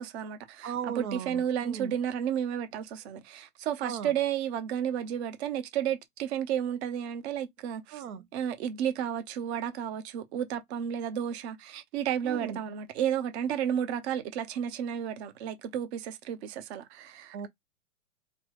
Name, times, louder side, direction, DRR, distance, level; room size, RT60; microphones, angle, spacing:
voice 1, 0.0-8.0 8.3-17.4, right 9 dB, 50° right, 0.7 m, -32 dB
voice 2, 0.6-1.9 3.8-4.1 7.9-8.3 12.2-12.6 17.3-17.5, right 7 dB, 85° right, 0.7 m, -37 dB
3.3 x 2.0 x 3.0 m
hypercardioid pair, 135°, 43 cm